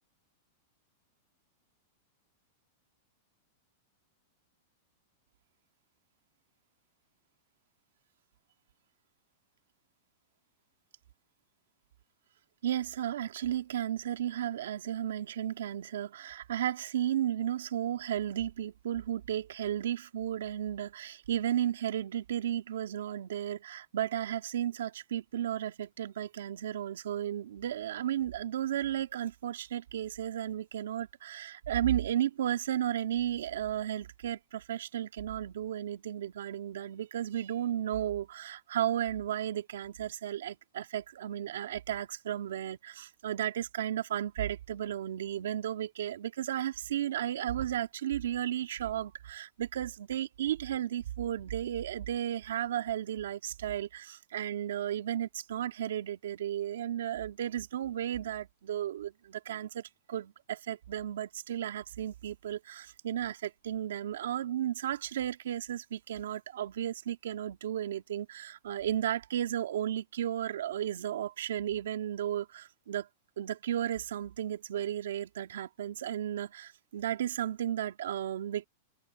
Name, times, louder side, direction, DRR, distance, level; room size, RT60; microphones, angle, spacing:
voice 1, 12.6-73.1 73.4-78.7, right 11 dB, 85° right, 2.3 m, -34 dB
open air
supercardioid pair, 165°, 0 cm